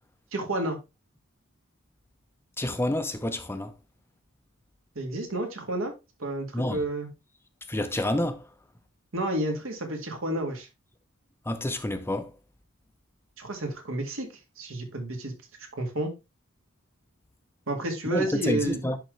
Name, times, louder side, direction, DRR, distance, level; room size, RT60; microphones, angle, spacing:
voice 1, 0.3-0.8 5.0-5.9 6.2-7.1 9.1-10.7 13.4-14.3 14.6-15.3 15.8-16.1 17.7-18.8, right 1 dB, 70° right, 2.0 m, -30 dB
voice 2, 2.6-3.7 6.5-6.8 7.7-8.4 11.5-12.3 18.1-19.0, left 1 dB, 10° left, 0.7 m, -28 dB
10.5 x 3.9 x 3.2 m
head